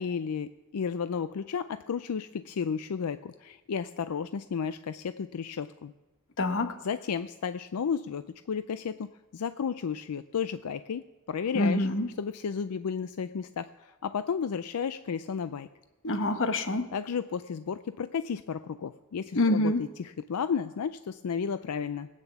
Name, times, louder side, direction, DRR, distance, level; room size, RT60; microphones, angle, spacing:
voice 1, 0.0-5.9 6.8-11.9 12.2-15.7 16.9-22.1, left 6 dB, 85° left, 12 dB, 0.4 m, -33 dB
voice 2, 6.4-6.8 11.5-12.1 16.0-16.9 19.3-19.8, left 2 dB, 60° left, 8 dB, 1.2 m, -26 dB
19.0 x 9.2 x 7.0 m, 1.1 s
head